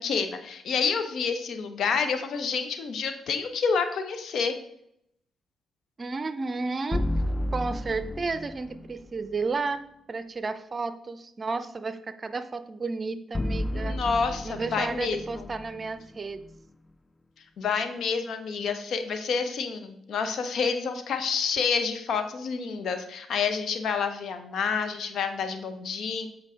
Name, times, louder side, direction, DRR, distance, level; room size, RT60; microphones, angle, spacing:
voice 1, 0.0-4.6 13.7-15.5 17.6-26.3, left 5 dB, 65° left, 8 dB, 0.7 m, -28 dB
voice 2, 6.0-7.0 7.5-14.0 14.4-16.4, right 4 dB, 40° right, 12 dB, 0.5 m, -32 dB
sound 1, 6.9-9.1 13.3-16.6, left 1 dB, 25° left, 0.4 m, -32 dB
7.5 x 4.6 x 3.6 m, 0.75 s
hypercardioid pair, 40°, 0 cm